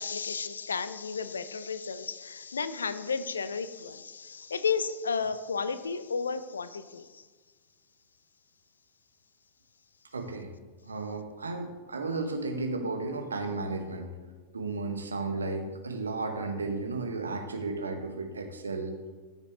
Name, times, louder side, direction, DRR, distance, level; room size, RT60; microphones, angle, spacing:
voice 1, 0.0-7.3, left 5 dB, 75° left, 14 dB, 0.5 m, -33 dB
voice 2, 10.1-10.5 10.9-14.1 14.5-19.0, right 3 dB, 75° right, 4 dB, 1.2 m, -34 dB
14.0 x 6.6 x 3.1 m, 1.4 s
figure-of-eight pair, 90°, 0 cm